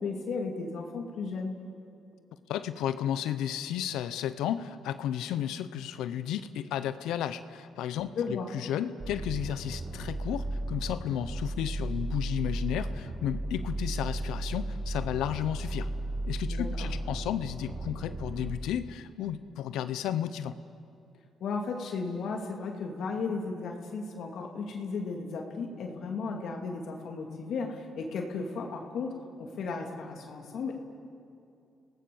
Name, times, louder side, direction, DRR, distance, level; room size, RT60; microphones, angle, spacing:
voice 1, 0.0-1.6 8.2-8.5 16.5-16.9 21.4-30.7, left 4 dB, 70° left, 2 dB, 2.5 m, -35 dB
voice 2, 2.5-15.9 16.3-20.5, left 10 dB, 90° left, 12 dB, 0.7 m, -33 dB
sound 1, 9.0-18.5, right 1 dB, 40° right, 2.2 m, -35 dB
29.5 x 18.0 x 7.1 m, 2.6 s
cardioid pair, 90°, 0 cm